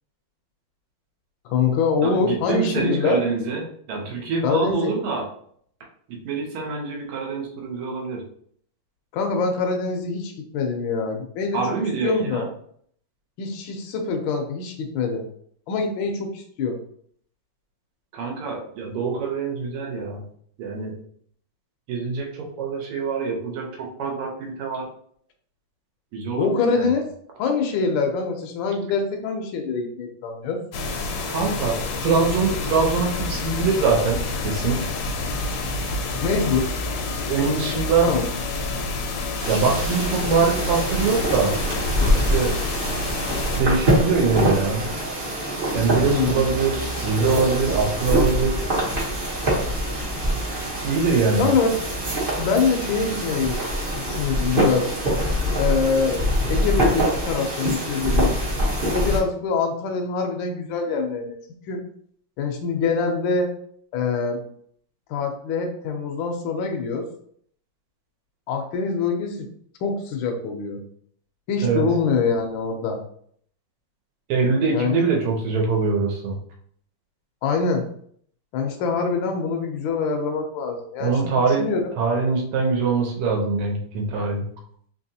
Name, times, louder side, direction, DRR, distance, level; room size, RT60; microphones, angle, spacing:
voice 1, 1.4-3.2 4.4-5.0 9.1-12.5 13.4-15.2 15.7-16.8 26.4-27.1 27.4-30.6 36.2-36.7 38.0-38.3 46.0-46.4 51.4-51.7 52.4-53.6 53.9-54.9 55.6-56.2 56.5-58.3 58.8-61.4 61.7-61.8 62.4-63.5 63.9-64.4 65.1-67.1 68.5-69.5 69.8-70.8 71.5-73.0 74.7-74.9 77.4-77.9 78.5-81.9, left 4 dB, 70° left, 3 dB, 1.2 m, -24 dB
voice 2, 2.0-5.3 6.1-8.2 11.5-12.4 18.1-20.2 20.6-21.0 21.9-24.9 26.1-26.9 31.3-34.8 37.3-38.1 39.5-41.5 42.1-42.5 43.5-44.9 45.7-48.6 50.8-51.5 71.6-71.9 74.3-76.4 81.0-81.7 82.0-84.5, right 4 dB, 85° right, 0 dB, 1.8 m, -23 dB
sound 1, 30.7-43.6, left 2 dB, 90° left, 1.6 m, -28 dB
sound 2, 39.4-59.2, equal, 50° right, 0.6 m, -25 dB
sound 3, 45.7-53.2, right 1 dB, 50° left, 0.7 m, -35 dB
4.0 x 2.8 x 2.7 m, 0.63 s
omnidirectional pair, 2.4 m